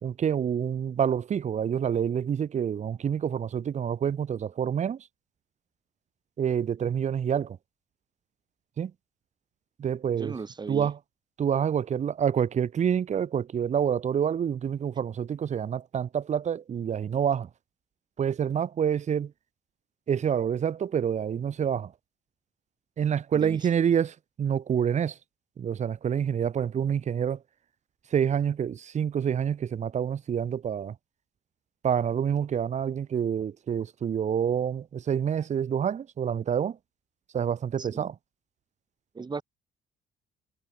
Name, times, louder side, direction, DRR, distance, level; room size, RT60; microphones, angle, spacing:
voice 1, 0.0-5.0 6.4-7.6 8.8-8.9 9.8-10.3 10.7-11.0 11.4-17.5 18.2-19.3 20.1-21.9 23.0-25.1 25.6-27.4 28.1-30.9 31.8-36.8 37.3-38.1, right 8 dB, 45° right, 2.7 m, -27 dB
voice 2, 10.2-10.9 23.3-23.7 37.8-38.1 39.1-39.4, right 4 dB, 25° right, 6.1 m, -37 dB
cardioid pair, 110°, 17 cm